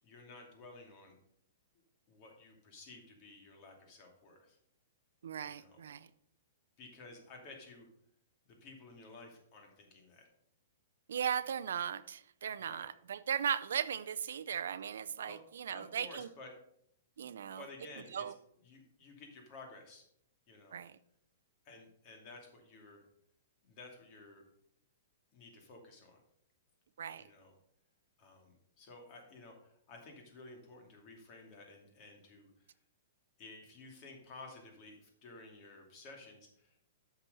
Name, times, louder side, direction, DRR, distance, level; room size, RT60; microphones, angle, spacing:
voice 1, 0.0-1.2 2.1-4.6 5.4-5.8 6.8-7.9 8.4-10.3 12.6-12.9 15.2-15.4 15.7-16.5 17.2-17.3 17.6-18.3 18.6-20.0 20.5-20.8 21.6-23.0 23.6-24.4 25.3-26.2 27.2-27.5 28.2-32.7 33.4-36.8, left 3 dB, 40° left, 2.5 m, -54 dB
voice 2, 5.2-6.1 11.1-16.3 17.2-17.6 18.1-18.3 20.7-20.9 27.0-27.2, right 8 dB, 75° right, 0.5 m, -37 dB
8.3 x 6.0 x 5.4 m
hypercardioid pair, 135°, 0 cm